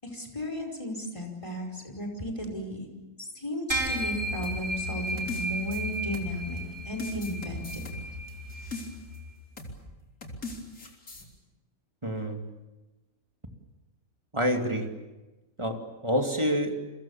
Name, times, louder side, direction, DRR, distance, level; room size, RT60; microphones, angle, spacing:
voice 1, 0.0-2.9 3.2-7.8, equal, 20° left, 3 dB, 5.1 m, -35 dB
sound 1, 3.7-9.3, equal, 35° right, 6.1 m, -34 dB
sound 2, 4.4-6.6 7.0-9.2 9.6-9.8 10.2-11.2, left 2 dB, 75° left, 4.2 m, -40 dB
voice 2, 12.0-12.4 14.3-14.9 15.6-16.8, equal, 20° right, 4 dB, 2.6 m, -27 dB
29.5 x 24.0 x 7.2 m, 1.1 s
omnidirectional pair, 1.5 m